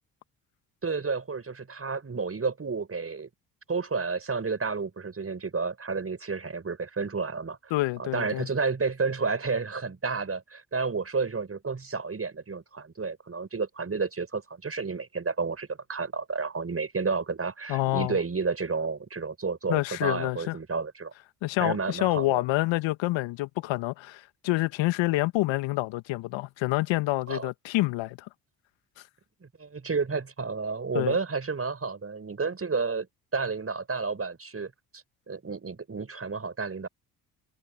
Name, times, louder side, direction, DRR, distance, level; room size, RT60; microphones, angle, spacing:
voice 1, 0.8-3.3 3.7-7.7 8.0-21.1 21.6-22.4 27.3-27.5 29.4-33.1 33.3-36.9, right 4 dB, 30° right, 6.2 m, -31 dB
voice 2, 7.7-8.5 17.7-18.2 19.7-20.6 21.4-28.3 30.9-31.2, left 19 dB, 65° left, 2.1 m, -27 dB
hypercardioid pair, 55°, 48 cm